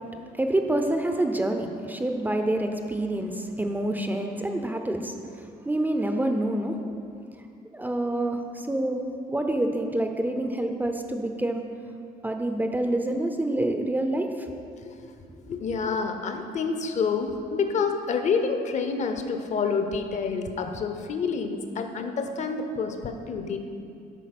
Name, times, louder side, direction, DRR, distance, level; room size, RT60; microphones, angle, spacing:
voice 1, 0.3-6.8 7.7-9.0 9.3-11.7 12.2-14.5, right 1 dB, 10° right, 5 dB, 0.5 m, -27 dB
voice 2, 15.5-23.6, left 5 dB, 45° left, 6 dB, 0.8 m, -28 dB
8.3 x 4.9 x 6.0 m, 2.4 s
cardioid pair, 110°, 17 cm